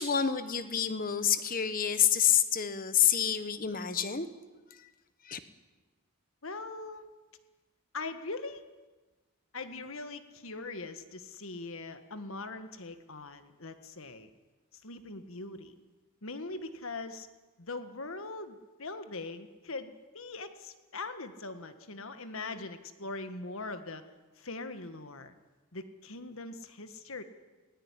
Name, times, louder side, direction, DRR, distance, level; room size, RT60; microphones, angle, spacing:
voice 1, 0.0-4.3 5.2-5.4, left 9 dB, 40° left, 11 dB, 1.3 m, -28 dB
voice 2, 6.4-7.1 7.9-8.6 9.5-14.3 14.7-15.7 16.2-17.3 17.6-24.1 24.4-25.3 25.7-27.2, left 3 dB, 70° left, 9 dB, 1.6 m, -41 dB
19.0 x 18.0 x 9.8 m, 1.2 s
head